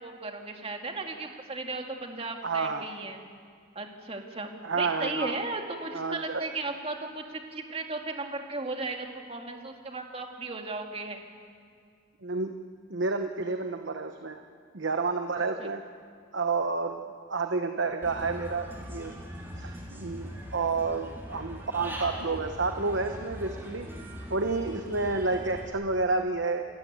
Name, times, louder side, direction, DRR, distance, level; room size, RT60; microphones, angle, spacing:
voice 1, 0.0-3.2 3.8-11.2 15.6-15.7, right 3 dB, 30° right, 3 dB, 2.2 m, -36 dB
voice 2, 2.4-2.9 4.6-5.4 5.9-6.4 12.2-12.6 12.9-14.4 14.7-15.8 16.3-17.0 17.3-19.1 19.6-23.9 24.3-26.7, right 3 dB, 65° right, 6 dB, 1.0 m, -30 dB
Human voice / Bird, 18.0-25.7, equal, 10° right, 3.5 m, -41 dB
28.5 x 13.5 x 9.4 m, 2.1 s
head